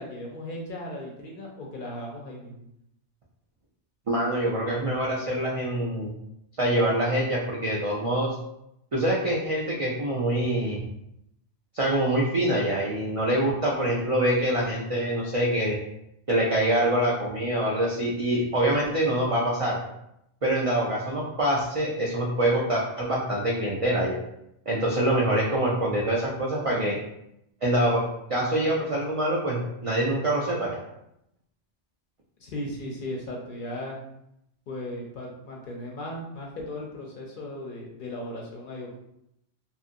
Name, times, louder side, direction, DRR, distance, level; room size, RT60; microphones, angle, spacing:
voice 1, 0.0-2.6 32.4-34.0 34.7-39.0, left 1 dB, 60° left, -1 dB, 0.6 m, -37 dB
voice 2, 4.1-6.1 6.6-8.3 8.9-10.8 11.7-15.8 16.3-19.8 20.4-24.2 24.7-27.0 27.6-28.0 28.3-30.8, right 1 dB, 65° right, -4 dB, 0.3 m, -25 dB
2.8 x 2.5 x 2.5 m, 0.80 s
omnidirectional pair, 1.2 m